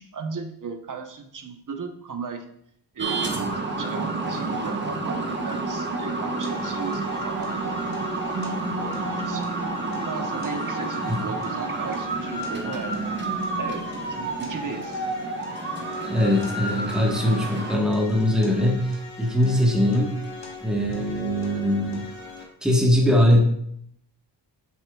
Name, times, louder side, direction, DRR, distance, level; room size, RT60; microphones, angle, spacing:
voice 1, 0.0-2.5 2.9-7.7 8.3-9.4 10.0-13.0 13.6-13.8 14.1-15.1, right 5 dB, 45° right, 5 dB, 1.0 m, -36 dB
sound 1, 3.0-17.8, right 3 dB, 25° right, 1.1 m, -29 dB
sound 2, 6.4-22.4, left 3 dB, 40° left, 2.1 m, -41 dB
voice 2, 16.0-20.2 20.6-22.0 22.6-23.4, left 1 dB, ahead, -1 dB, 1.2 m, -21 dB
8.6 x 7.6 x 2.3 m, 0.70 s
wide cardioid pair, 150°, 43 cm